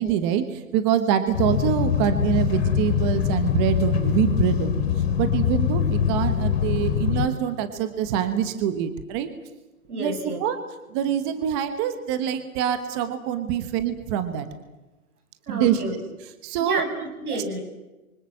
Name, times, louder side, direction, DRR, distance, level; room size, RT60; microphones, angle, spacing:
voice 1, 0.0-4.9 5.2-9.3 9.9-10.1 10.4-10.6 10.9-14.5 15.5-16.0 16.4-16.8 17.3-17.4, right 9 dB, 20° right, 10 dB, 1.2 m, -25 dB
sound 1, 1.3-7.3, left 8 dB, 45° left, 4.8 m, -23 dB
voice 2, 9.9-10.4 15.5-16.0 16.6-17.6, right 2 dB, 85° right, 5 dB, 7.7 m, -30 dB
28.5 x 24.5 x 7.7 m, 1.1 s
hypercardioid pair, 165°, 44 cm